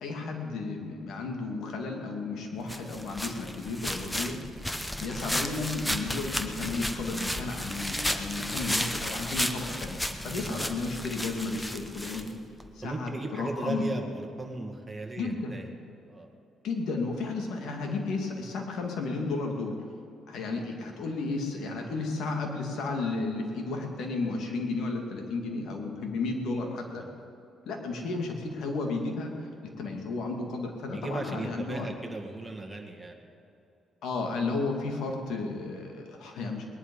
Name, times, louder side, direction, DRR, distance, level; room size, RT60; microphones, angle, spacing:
voice 1, 0.0-4.4 5.0-10.0 10.2-12.3 12.7-13.8 15.2-15.5 16.6-19.8 20.3-27.0 27.7-29.5 29.8-31.9 34.0-36.7, left 3 dB, 80° left, 2 dB, 2.5 m, -33 dB
sound 1, 2.7-12.7, left 1 dB, 10° left, 1.0 m, -33 dB
voice 2, 12.8-15.7 16.1-16.3 26.9-27.1 30.9-33.2, right 2 dB, 15° right, 1 dB, 2.1 m, -36 dB
20.0 x 11.0 x 5.5 m, 2.8 s
cardioid pair, 90°, 0 cm